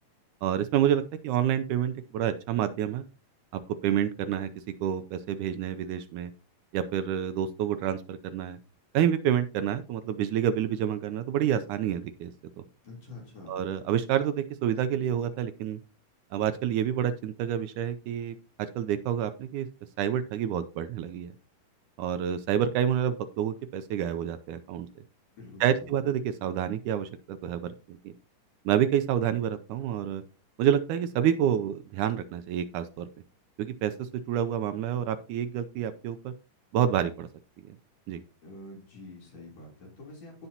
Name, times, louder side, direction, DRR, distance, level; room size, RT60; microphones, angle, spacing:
voice 1, 0.4-3.0 3.8-4.5 4.8-6.3 6.7-8.6 8.9-12.3 12.6-12.7 13.5-15.8 16.3-19.7 20.0-21.3 22.0-24.9 25.6-28.1 28.7-30.2 30.6-33.1 33.6-36.3 36.7-37.3 37.7-37.8 38.1-38.2, right 10 dB, 75° right, 10 dB, 1.9 m, -28 dB
voice 2, 12.8-13.6 25.4-25.9 38.4-40.5, left 2 dB, 50° left, -2 dB, 4.4 m, -46 dB
16.5 x 5.6 x 2.8 m, 0.32 s
omnidirectional pair, 3.9 m